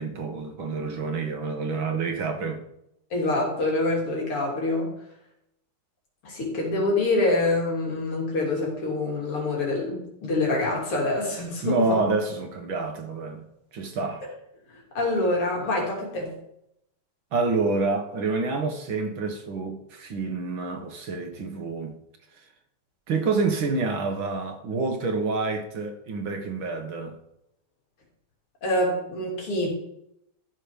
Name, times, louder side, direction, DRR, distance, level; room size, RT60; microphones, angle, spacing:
voice 1, 0.0-2.6 11.6-13.5 13.7-14.3 17.3-22.0 23.1-27.2, right 3 dB, 65° right, 2.3 m, -28 dB
voice 2, 3.1-5.0 6.2-12.0 14.7-16.4 28.6-29.7, left 2 dB, 80° left, 4.3 m, -26 dB
14.0 x 6.5 x 5.1 m
omnidirectional pair, 2.4 m